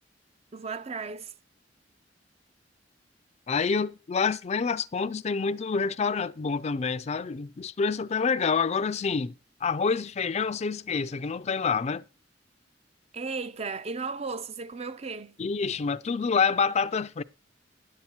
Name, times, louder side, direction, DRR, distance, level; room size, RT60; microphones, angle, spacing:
voice 1, 0.5-1.3 13.1-15.3, right 4 dB, 35° right, 0.5 m, -35 dB
voice 2, 3.5-9.3 9.6-12.0 15.4-17.2, left 5 dB, 35° left, 0.4 m, -27 dB
10.5 x 8.5 x 4.3 m
head